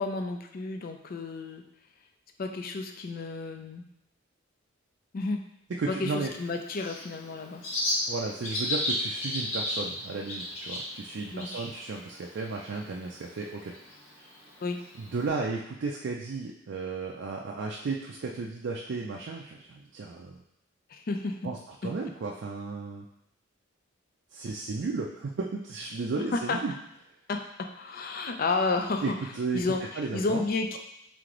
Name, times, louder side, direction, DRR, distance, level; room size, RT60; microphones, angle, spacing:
voice 1, 0.0-1.6 2.4-3.8 5.1-5.4 5.9-7.6 11.3-11.5 14.6-14.8 20.9-21.4 26.3-26.6 27.3-29.2 29.5-29.8 30.1-30.8, left 3 dB, 45° left, 5 dB, 0.4 m, -31 dB
voice 2, 5.7-6.3 8.1-13.7 14.9-20.4 21.4-23.0 24.3-26.7 29.0-29.7 29.9-30.4, right 4 dB, 60° right, -1 dB, 0.4 m, -34 dB
Bird, 6.3-15.3, left 1 dB, 75° left, 1.1 m, -35 dB
3.4 x 3.3 x 3.7 m, 0.78 s
head